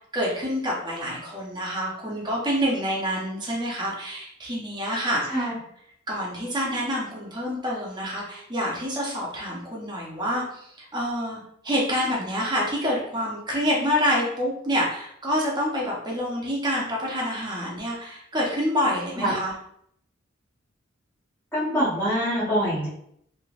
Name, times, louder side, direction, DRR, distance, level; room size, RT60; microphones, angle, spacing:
voice 1, 0.1-5.5 6.1-19.5, equal, 20° right, -4 dB, 0.9 m, -27 dB
voice 2, 21.5-22.9, equal, 10° left, -12 dB, 1.0 m, -24 dB
3.3 x 3.0 x 2.5 m, 0.69 s
head